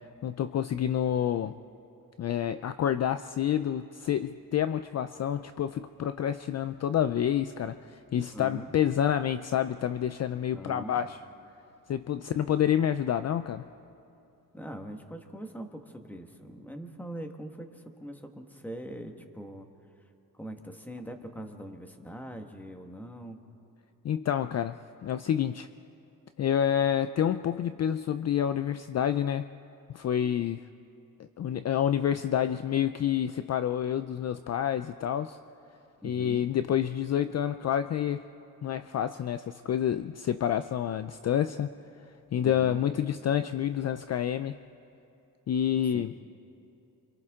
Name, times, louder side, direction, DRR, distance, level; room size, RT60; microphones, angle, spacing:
voice 1, 0.2-1.5 2.2-11.2 11.9-13.6 24.0-24.8 25.0-25.7 26.4-29.5 29.9-30.6 31.4-35.4 36.0-38.2 38.6-41.7 42.3-44.6 45.5-46.1, left 9 dB, 45° left, 11 dB, 0.4 m, -28 dB
voice 2, 8.2-8.7 10.5-11.0 14.5-19.7 20.3-23.4 36.0-36.5 42.4-42.8 45.9-46.0, right 1 dB, 5° left, 4 dB, 1.5 m, -42 dB
29.0 x 26.0 x 3.7 m, 2.7 s
cardioid pair, 125°, 37 cm